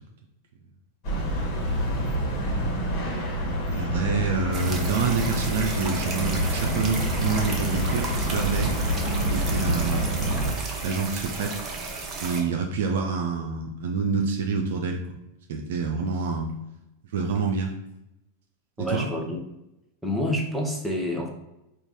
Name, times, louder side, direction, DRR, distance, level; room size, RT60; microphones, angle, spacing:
sound 1, 1.0-10.5, right 1 dB, 45° left, 1.4 m, -27 dB
voice 1, 3.7-8.7 9.3-10.1 10.8-11.5 12.2-15.0 15.5-16.5 17.1-17.7 18.9-19.1, right 4 dB, 55° right, 2 dB, 0.5 m, -27 dB
sound 2, 4.5-12.4, right 3 dB, 25° right, 1.0 m, -34 dB
voice 2, 18.8-19.4 20.0-21.3, left 1 dB, 5° right, 0 dB, 0.9 m, -28 dB
4.6 x 2.4 x 3.9 m, 0.91 s
figure-of-eight pair, 90°, 0 cm